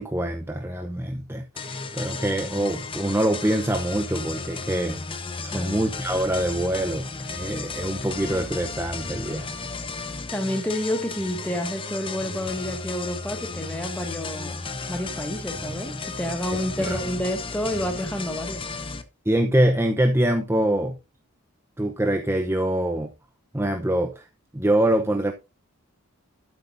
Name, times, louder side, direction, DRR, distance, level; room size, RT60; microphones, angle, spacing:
voice 1, 0.0-5.0 5.4-9.7 16.8-17.0 19.3-21.0 21.8-23.1 23.5-24.3 24.5-25.3, right 1 dB, 10° right, 0.7 m, -24 dB
sound 1, 1.6-19.0, left 4 dB, 25° left, 0.9 m, -34 dB
voice 2, 10.3-18.6, equal, 5° left, 1.7 m, -29 dB
12.5 x 8.0 x 2.6 m
head